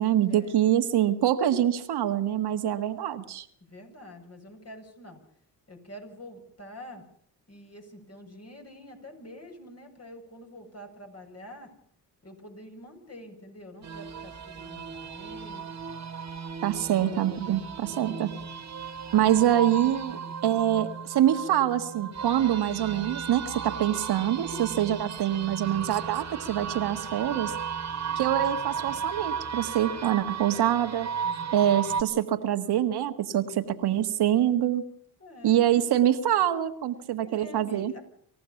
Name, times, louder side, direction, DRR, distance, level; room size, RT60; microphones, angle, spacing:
voice 1, 0.0-3.4 16.6-18.3 19.1-27.5 28.2-31.1 31.5-34.8 35.4-37.9, right 11 dB, 70° right, 8 dB, 1.8 m, -25 dB
voice 2, 3.6-5.2 5.7-7.0 7.5-11.7 12.2-15.6 17.8-18.6 20.1-20.3 35.2-36.0 37.2-38.0, equal, 40° left, 3 dB, 7.4 m, -46 dB
sound 1, 13.8-32.0, right 7 dB, 40° right, 2.2 m, -35 dB
26.0 x 15.0 x 7.2 m, 0.63 s
supercardioid pair, 65°, 40 cm